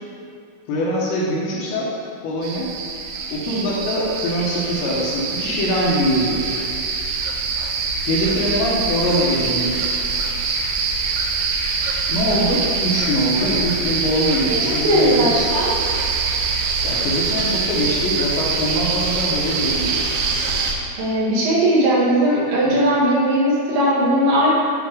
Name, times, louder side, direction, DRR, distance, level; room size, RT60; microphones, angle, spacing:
voice 1, 0.7-1.9 2.2-2.7 3.3-6.6 8.1-10.0 12.1-15.3 16.8-20.0 22.6-22.8, equal, 75° left, -5 dB, 2.9 m, -23 dB
sound 1, 2.4-20.7, right 4 dB, 85° right, 3.2 m, -24 dB
voice 2, 14.5-15.7 21.0-24.5, right 1 dB, 70° right, -6 dB, 3.3 m, -18 dB
8.9 x 3.4 x 4.9 m, 2.4 s
omnidirectional pair, 5.8 m